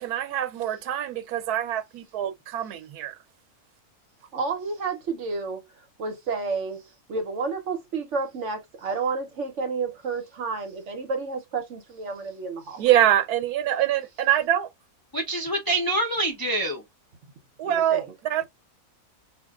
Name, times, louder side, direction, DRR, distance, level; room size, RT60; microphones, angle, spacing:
voice 1, 0.0-3.2 12.8-14.7 17.6-18.5, right 12 dB, 85° right, 1.1 m, -24 dB
voice 2, 4.3-6.8 7.1-12.8 17.6-18.0, right 4 dB, 60° right, 0.9 m, -31 dB
voice 3, 15.1-16.8, right 1 dB, 35° left, 0.3 m, -26 dB
5.0 x 2.4 x 2.3 m
omnidirectional pair, 1.6 m